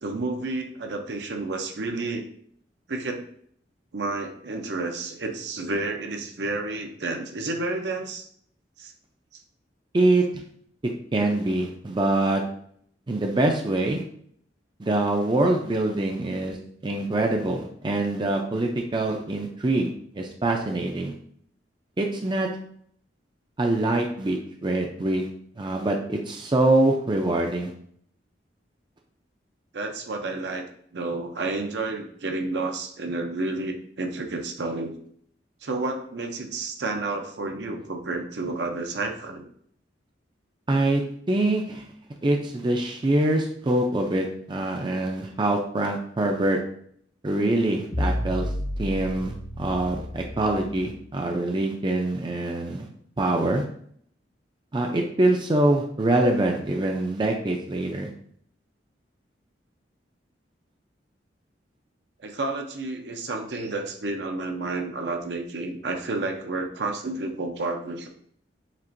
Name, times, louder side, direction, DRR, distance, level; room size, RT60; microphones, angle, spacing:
voice 1, 0.0-2.3 2.9-3.2 3.9-8.3 8.8-8.9 29.7-30.6 30.9-34.9 35.6-39.5 62.2-68.1, right 2 dB, 65° right, 4 dB, 0.6 m, -30 dB
voice 2, 9.9-10.4 10.8-12.4 13.1-14.0 14.8-16.6 16.8-19.9 20.1-21.1 22.0-22.5 23.6-25.3 25.6-27.7 40.7-41.0 41.3-41.8 42.2-46.6 47.2-48.5 48.8-52.9 53.2-53.6 54.7-58.1, right 2 dB, 25° right, 2 dB, 0.4 m, -24 dB
sound 1, 47.9-51.0, left 1 dB, 50° left, 0.9 m, -31 dB
7.3 x 2.5 x 2.6 m, 0.63 s
head